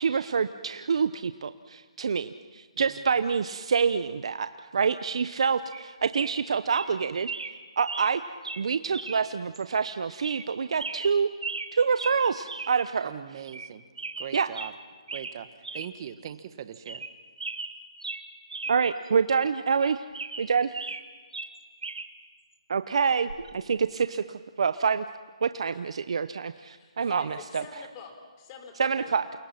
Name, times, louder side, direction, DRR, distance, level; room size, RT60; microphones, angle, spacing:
voice 1, 0.0-4.5 4.7-7.3 7.8-8.2 8.6-11.3 11.7-13.1 14.3-14.5 18.7-20.1 20.4-20.8 22.7-25.0 25.4-27.6 28.8-29.4, right 6 dB, 65° right, 11 dB, 0.9 m, -26 dB
voice 2, 2.7-3.2 13.0-13.9 14.2-14.7 15.1-17.1, right 10 dB, 40° right, 12 dB, 1.4 m, -41 dB
sound 1, 5.7-5.9 6.1-6.4 6.7-6.9 7.3-7.5 7.9-8.1 8.4-8.6 8.9-9.2 9.5-9.6 10.2-10.5 10.8-11.7 12.0-12.2 12.5-12.7 13.0-13.1 13.5-13.7 14.0-14.7 15.1-15.4 15.6-15.9 16.3-16.4 16.7-17.1 17.4-18.8 19.1-19.2 19.7-21.0 21.3-22.1 23.3-23.5, right 4 dB, 85° right, 2.4 m, -37 dB
voice 3, 26.5-29.1, left 6 dB, 30° left, 5 dB, 4.4 m, -46 dB
29.0 x 28.0 x 5.9 m, 1.5 s
hypercardioid pair, 150°, 3 cm